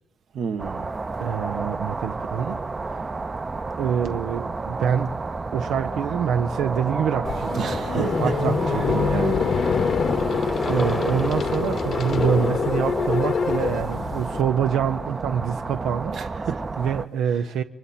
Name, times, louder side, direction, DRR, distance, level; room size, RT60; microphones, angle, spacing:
voice 1, 0.3-0.8 7.5-8.3 16.1-16.6, right 6 dB, 65° right, 1.3 m, -30 dB
sound 1, 0.6-17.1, right 3 dB, 30° right, 0.7 m, -31 dB
voice 2, 1.2-2.6 3.8-5.1 5.5-7.7 7.9-9.7 10.6-16.2 16.8-17.6, right 8 dB, 80° right, 0.6 m, -26 dB
sound 2, 7.2-14.4, left 6 dB, 60° left, 1.0 m, -25 dB
Car passing by / Engine, 8.8-14.7, equal, ahead, 1.1 m, -37 dB
27.5 x 23.5 x 4.3 m
cardioid pair, 90°, 0 cm